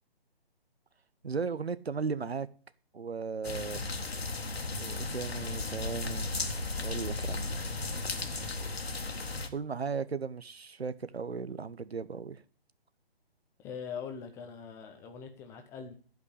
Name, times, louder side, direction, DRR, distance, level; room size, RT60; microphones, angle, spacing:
voice 1, 1.2-2.5 2.9-3.8 4.8-6.3 6.8-7.5 9.5-12.4, right 5 dB, 85° right, 1.0 m, -36 dB
sound 1, 3.4-9.5, left 3 dB, 80° left, 1.7 m, -35 dB
voice 2, 13.6-15.9, left 6 dB, 10° left, 0.7 m, -42 dB
12.0 x 5.2 x 8.3 m
figure-of-eight pair, 145°, 31 cm